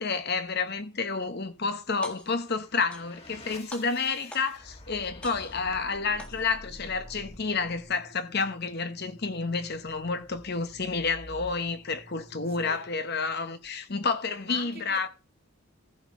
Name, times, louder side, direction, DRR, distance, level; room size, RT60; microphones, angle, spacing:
voice 1, 0.0-15.1, left 4 dB, 50° left, 1.0 m, -30 dB
sound 1, 1.9-2.5 2.9-3.4 3.7-4.7 5.2-5.8 6.2-6.8, equal, 5° left, 1.7 m, -45 dB
sound 2, 2.4-13.1, left 1 dB, 25° left, 1.7 m, -49 dB
voice 2, 12.5-12.8 14.4-15.1, right 4 dB, 45° right, 2.6 m, -45 dB
14.5 x 5.1 x 5.2 m
head